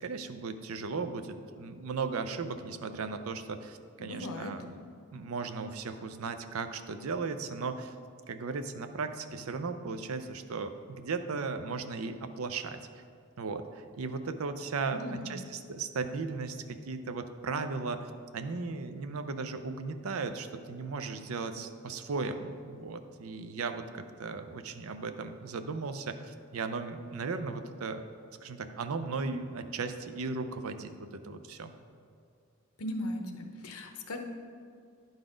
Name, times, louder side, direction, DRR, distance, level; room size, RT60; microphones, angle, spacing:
voice 1, 0.0-4.8 5.1-8.0 8.3-12.8 13.4-28.0 28.4-31.7, right 4 dB, 80° right, 9 dB, 0.5 m, -36 dB
voice 2, 4.0-4.6 14.9-15.3 32.8-34.2, left 1 dB, 90° left, 5 dB, 0.8 m, -38 dB
10.5 x 4.0 x 5.0 m, 2.3 s
head